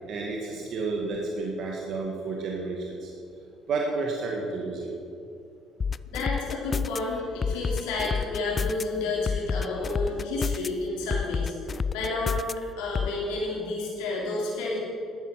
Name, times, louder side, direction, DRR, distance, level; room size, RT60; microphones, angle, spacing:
voice 1, 0.1-3.1 3.7-4.9, right 3 dB, 65° right, -1 dB, 1.8 m, -31 dB
sound 1, 5.8-7.0 7.4-8.8 9.3-10.7 11.1-12.5 13.0-13.1, left 5 dB, 35° left, 0.3 m, -28 dB
voice 2, 6.1-12.4 12.8-14.8, left 2 dB, 90° left, -5 dB, 3.4 m, -30 dB
12.5 x 9.0 x 6.0 m, 2.5 s
supercardioid pair, 80°, 0 cm